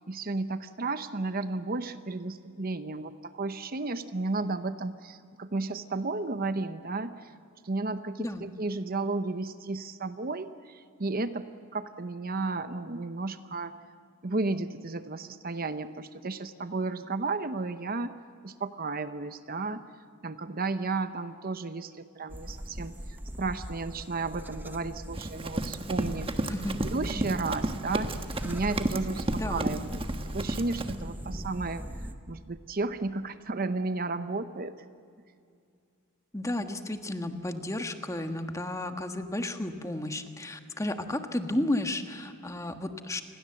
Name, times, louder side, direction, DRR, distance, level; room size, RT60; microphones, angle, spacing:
voice 1, 0.1-7.3 7.6-13.7 14.2-18.1 18.4-19.8 20.2-22.9 23.4-26.5 26.8-28.1 28.4-30.0 30.3-31.8 32.3-34.8, right 3 dB, 45° right, 11 dB, 0.9 m, -33 dB
sound 1, 22.3-32.1, equal, 10° right, 1.1 m, -39 dB
Run, 25.1-31.0, right 1 dB, 25° right, 1.3 m, -33 dB
voice 2, 36.3-43.2, left 1 dB, 15° left, 6 dB, 1.5 m, -33 dB
28.5 x 21.5 x 7.8 m, 2.4 s
head